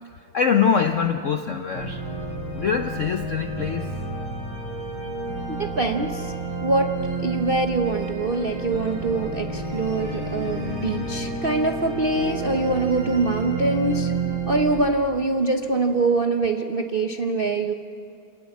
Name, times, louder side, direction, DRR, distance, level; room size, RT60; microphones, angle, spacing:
voice 1, 0.3-2.0 2.5-3.9, left 6 dB, 65° left, 6 dB, 0.7 m, -23 dB
sound 1, 1.7-14.8, right 3 dB, 80° right, 6.6 m, -30 dB
voice 2, 5.5-6.3 6.6-6.9 7.2-14.1 14.5-17.7, right 3 dB, 50° right, 4 dB, 0.6 m, -24 dB
28.0 x 18.5 x 7.2 m, 2.6 s
omnidirectional pair, 2.2 m